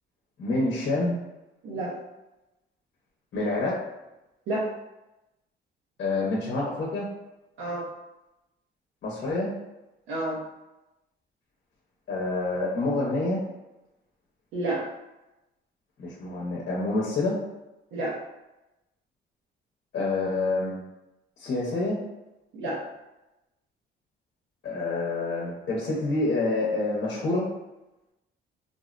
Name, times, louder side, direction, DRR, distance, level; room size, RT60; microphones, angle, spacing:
voice 1, 0.4-1.2 3.3-3.8 6.0-7.1 9.0-9.5 12.1-13.4 16.0-17.4 19.9-20.8 21.4-22.0 24.6-27.5, left 2 dB, 55° left, -4 dB, 0.8 m, -27 dB
voice 2, 10.1-10.4 14.5-14.8 17.9-18.1 22.5-22.8, right 1 dB, 85° right, -6 dB, 0.7 m, -29 dB
3.7 x 2.0 x 2.5 m, 0.96 s
cardioid pair, 90°, 20 cm